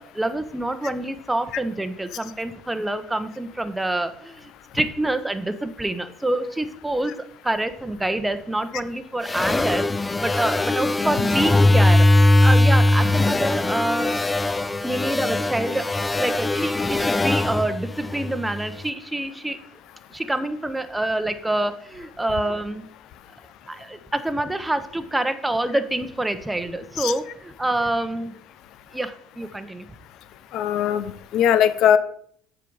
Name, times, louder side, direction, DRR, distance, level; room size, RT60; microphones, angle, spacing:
voice 1, 0.0-7.1 7.4-12.1 12.4-14.1 14.8-19.6 20.1-22.9 23.7-28.3 28.9-29.9, right 1 dB, 10° right, 10 dB, 0.9 m, -27 dB
sound 1, 9.2-18.7, left 2 dB, 20° left, 0.4 m, -20 dB
voice 2, 30.5-32.0, left 9 dB, 65° left, 15 dB, 0.6 m, -20 dB
7.5 x 5.0 x 5.5 m, 0.62 s
supercardioid pair, 75°, 0 cm